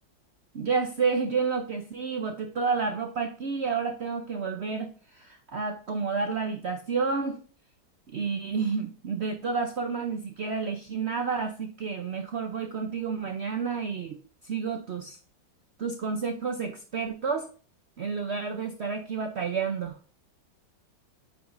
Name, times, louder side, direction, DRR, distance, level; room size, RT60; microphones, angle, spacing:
voice 1, 0.5-7.4 8.1-15.2 15.8-17.5 18.0-20.0, right 5 dB, 70° right, 5 dB, 0.6 m, -30 dB
8.9 x 5.0 x 2.5 m, 0.39 s
omnidirectional pair, 2.0 m